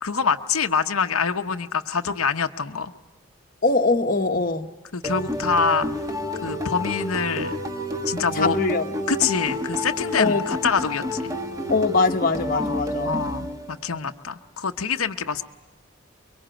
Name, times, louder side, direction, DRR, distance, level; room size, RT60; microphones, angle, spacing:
voice 1, 0.0-2.9 4.9-5.9 6.4-7.5 8.0-8.6 9.1-11.3 12.5-15.4, left 5 dB, 80° left, 6 dB, 0.9 m, -25 dB
voice 2, 3.6-4.7 8.3-9.1 10.2-10.5 11.7-13.1, left 3 dB, 40° left, 5 dB, 1.1 m, -22 dB
sound 1, 5.0-14.0, equal, 15° right, 1.6 m, -29 dB
24.5 x 23.5 x 8.9 m, 1.2 s
head